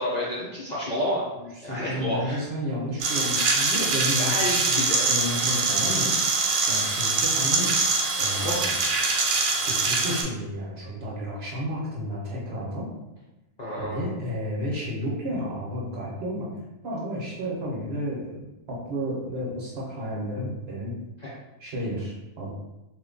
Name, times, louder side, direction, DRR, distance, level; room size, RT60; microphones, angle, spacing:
voice 1, 0.0-1.2 1.6-2.4 4.2-5.1 8.3-9.0 13.6-14.1 21.2-21.3, equal, 45° left, -7 dB, 0.6 m, -30 dB
voice 2, 1.4-4.4 4.7-6.4 6.7-7.7 8.2-8.8 9.6-12.9 13.8-16.5 16.8-21.0 21.6-22.5, equal, 55° right, -4 dB, 1.0 m, -32 dB
sound 1, 3.0-10.2, right 3 dB, 85° right, 1.1 m, -24 dB
3.0 x 2.2 x 3.7 m, 0.98 s
omnidirectional pair, 1.4 m